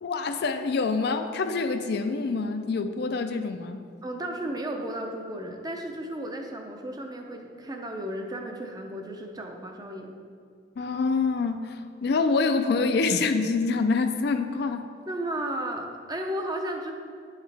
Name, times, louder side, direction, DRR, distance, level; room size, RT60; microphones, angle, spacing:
voice 1, 0.0-3.8 10.8-14.9, left 4 dB, 60° left, 8 dB, 0.4 m, -26 dB
voice 2, 4.0-10.1 15.1-16.9, right 1 dB, 20° right, 3 dB, 0.5 m, -34 dB
9.0 x 4.8 x 3.3 m, 2.2 s
head